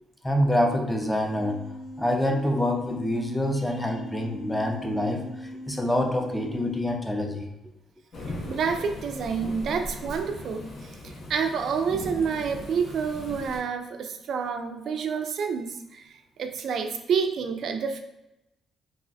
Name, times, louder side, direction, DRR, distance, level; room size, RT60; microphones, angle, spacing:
voice 1, 0.2-1.6 2.0-7.5, left 1 dB, 5° left, 2 dB, 0.4 m, -26 dB
sound 1, 1.1-6.9, equal, 90° left, 0.9 m, -40 dB
Thunderstorm / Rain, 8.1-13.6, left 1 dB, 55° left, 0.8 m, -39 dB
voice 2, 8.5-16.1 16.4-18.0, right 6 dB, 65° right, 6 dB, 0.3 m, -28 dB
3.1 x 2.4 x 2.5 m, 0.90 s
cardioid pair, 90°, 0 cm